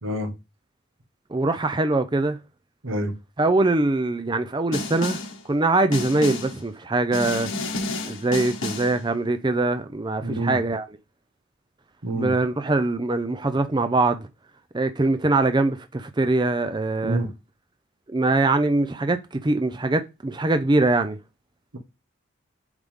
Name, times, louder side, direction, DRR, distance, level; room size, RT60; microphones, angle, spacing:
voice 1, 0.0-0.3 2.8-3.1 10.2-10.6 12.0-12.3 17.0-17.3 21.7-21.8, right 1 dB, 80° right, 1.6 m, -27 dB
voice 2, 1.3-2.4 3.4-5.2 5.5-7.5 8.1-10.8 12.1-14.3 14.7-17.2 18.1-21.2, right 2 dB, 20° right, 0.5 m, -22 dB
Snare drum, 4.7-5.4 5.9-6.6 7.1-9.0, left 3 dB, 85° left, 1.7 m, -30 dB
8.0 x 5.3 x 3.7 m
head